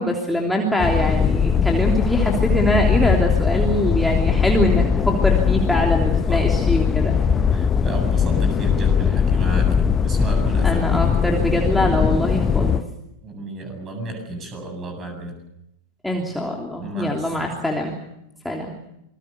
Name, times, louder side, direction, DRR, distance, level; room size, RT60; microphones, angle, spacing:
voice 1, 0.0-7.2 10.6-12.8 16.0-17.9 18.4-18.8, equal, 5° left, 0 dB, 3.2 m, -23 dB
G. Cordaro Etna reel, 0.8-12.8, left 7 dB, 20° left, 0.9 m, -20 dB
voice 2, 7.1-10.8 13.2-15.3 16.8-17.5, right 2 dB, 25° right, 5 dB, 7.9 m, -32 dB
27.5 x 21.5 x 7.0 m, 0.81 s
figure-of-eight pair, 90°, 0 cm